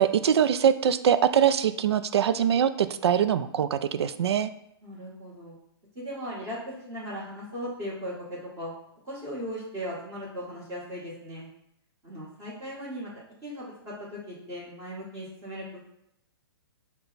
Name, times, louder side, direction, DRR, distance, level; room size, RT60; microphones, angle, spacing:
voice 1, 0.0-4.5, right 8 dB, 80° right, 12 dB, 0.4 m, -23 dB
voice 2, 4.8-5.5 5.9-8.7 9.0-11.5 12.0-13.1 13.4-15.9, equal, 20° right, -7 dB, 1.5 m, -38 dB
5.9 x 2.2 x 4.0 m, 0.79 s
hypercardioid pair, 150°, 13 cm